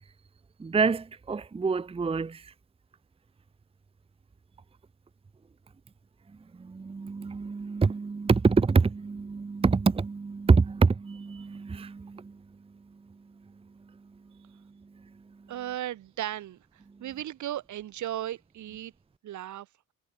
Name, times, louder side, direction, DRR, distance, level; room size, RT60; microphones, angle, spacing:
voice 1, 0.6-2.5 6.6-12.4, right 4 dB, 20° right, 0.7 m, -26 dB
voice 2, 15.5-16.6 17.0-18.9 19.2-19.7, right 12 dB, 75° right, 2.5 m, -35 dB
cardioid pair, 90°, 30 cm